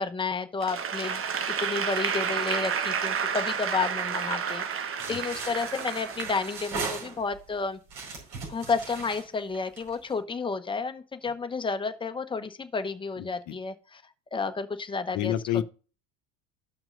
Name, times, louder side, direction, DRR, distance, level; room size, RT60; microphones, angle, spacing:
voice 1, 0.0-7.8 8.5-14.0 14.3-15.3, left 4 dB, 15° left, 0.9 m, -31 dB
Applause / Crowd, 0.6-6.9, right 7 dB, 35° right, 1.1 m, -30 dB
sound 1, 5.0-7.5 7.9-10.1, right 4 dB, 70° right, 5.1 m, -38 dB
voice 2, 13.2-13.5 15.1-15.6, left 12 dB, 55° left, 0.8 m, -29 dB
14.0 x 6.0 x 2.6 m
hypercardioid pair, 80°, 37 cm